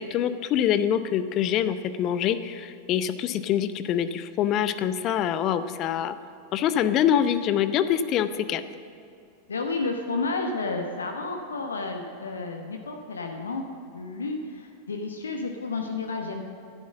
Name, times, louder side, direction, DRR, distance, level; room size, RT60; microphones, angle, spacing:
voice 1, 0.0-6.1 6.5-8.6, left 9 dB, 35° left, 13 dB, 0.6 m, -25 dB
voice 2, 9.5-13.6 13.9-16.4, left 3 dB, 70° left, 4 dB, 1.0 m, -31 dB
12.0 x 10.5 x 7.5 m, 2.4 s
figure-of-eight pair, 90°, 0 cm